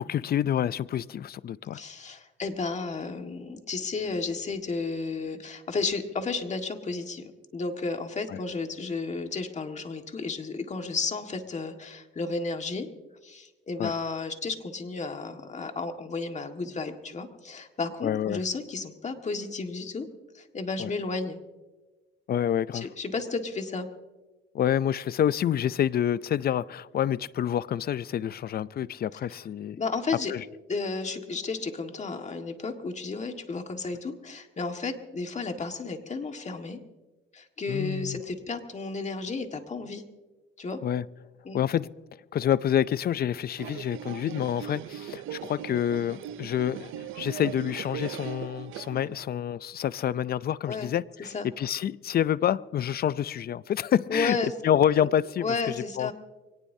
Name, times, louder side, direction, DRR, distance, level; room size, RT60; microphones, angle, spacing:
voice 1, 0.0-1.8 8.3-8.4 13.8-13.9 18.0-18.4 20.8-20.9 22.3-22.9 24.5-29.8 30.3-30.4 37.7-38.2 40.8-41.1 41.5-41.9 42.3-54.4 54.6-56.1, left 10 dB, 50° left, 0.5 m, -28 dB
voice 2, 1.7-12.9 13.2-20.1 20.3-21.4 22.7-23.9 29.7-30.3 30.7-36.8 37.3-40.0 40.6-40.8 41.5-41.6 50.7-50.9 51.3-51.5 54.1-54.5 55.0-55.1 55.4-56.1, left 4 dB, 35° left, 1.7 m, -33 dB
sound 1, 43.6-49.3, right 11 dB, 85° right, 0.6 m, -39 dB
24.5 x 18.5 x 2.8 m
cardioid pair, 90°, 20 cm